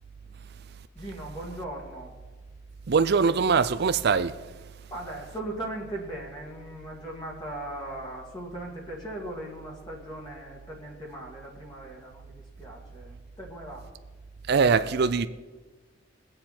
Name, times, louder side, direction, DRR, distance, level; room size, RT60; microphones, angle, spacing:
voice 1, 0.9-2.2 4.9-13.9, right 1 dB, 25° left, 2.3 m, -39 dB
voice 2, 2.9-4.4 14.5-15.3, right 5 dB, 55° right, 0.5 m, -22 dB
22.0 x 7.7 x 4.4 m
head